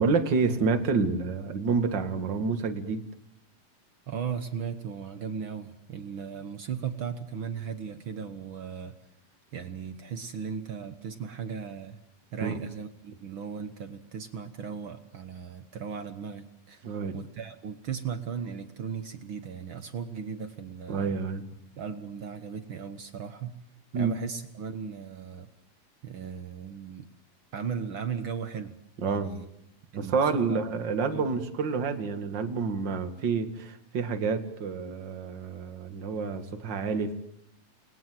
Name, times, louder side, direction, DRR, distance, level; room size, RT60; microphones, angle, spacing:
voice 1, 0.0-3.0 12.4-12.6 16.8-17.2 20.9-21.4 23.9-24.1 29.0-29.3 30.0-37.1, right 5 dB, 35° right, 7 dB, 2.2 m, -28 dB
voice 2, 4.1-8.9 9.5-12.0 12.3-16.9 17.1-21.2 21.8-23.5 23.9-25.5 26.0-27.0 27.5-28.7 29.1-29.5 29.9-30.6 30.9-31.2, right 7 dB, 70° right, 9 dB, 1.2 m, -37 dB
29.5 x 21.5 x 7.8 m, 0.76 s
omnidirectional pair, 4.1 m